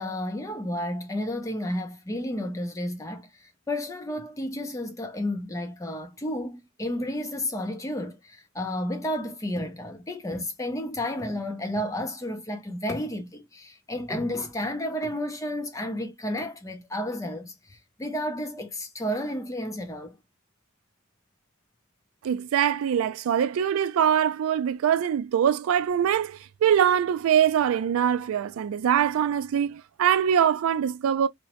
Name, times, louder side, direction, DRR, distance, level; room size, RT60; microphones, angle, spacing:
voice 1, 0.0-20.2, left 1 dB, 15° left, 0.4 m, -32 dB
voice 2, 22.2-31.3, right 9 dB, 75° right, 0.3 m, -23 dB
2.8 x 2.0 x 2.9 m
head